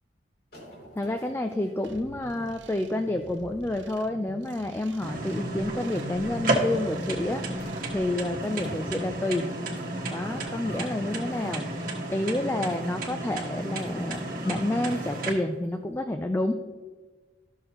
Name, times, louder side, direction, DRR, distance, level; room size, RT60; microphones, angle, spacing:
sound 1, 0.5-5.3 5.9-6.1 7.3-7.4 7.6-8.0 8.3-12.1 12.5-12.9 13.2-15.4 15.6-15.7, equal, 50° left, 2.5 m, -49 dB
voice 1, 1.0-9.5 10.0-16.6, left 1 dB, 15° left, 6 dB, 0.3 m, -29 dB
sound 2, 1.8-9.2, right 3 dB, 85° right, 0.6 m, -47 dB
sound 3, 5.0-15.3, right 1 dB, 50° right, 1.3 m, -32 dB
13.0 x 6.4 x 3.0 m, 1.4 s
head